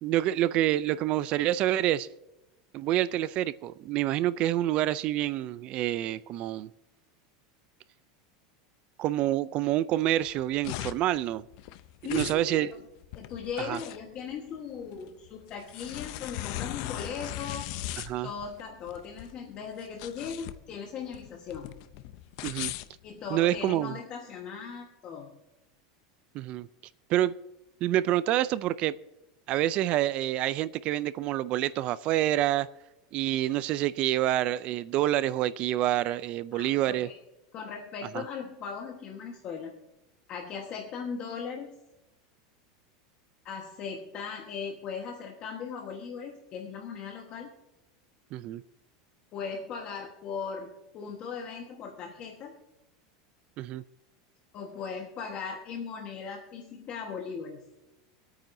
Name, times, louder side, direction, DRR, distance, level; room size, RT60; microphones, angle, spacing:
voice 1, 0.0-2.1 2.7-6.7 9.0-11.4 12.1-12.7 13.6-13.8 18.0-18.3 22.4-22.7 23.3-23.9 26.3-26.7 27.1-27.3 27.8-29.0 29.5-32.7 33.1-37.1 38.1-38.2 48.3-48.6 53.6-53.8, right 13 dB, 35° right, 18 dB, 0.3 m, -27 dB
sound 1, 10.2-23.7, left 15 dB, 50° left, 0.5 m, -39 dB
voice 2, 12.0-12.8 13.1-17.7 18.2-21.8 23.0-25.3 36.5-37.2 37.5-39.8 40.3-41.8 43.4-47.5 49.3-52.5 54.5-57.6, left 6 dB, 35° left, 1 dB, 1.3 m, -38 dB
26.0 x 8.9 x 2.7 m, 0.95 s
supercardioid pair, 160°, 3 cm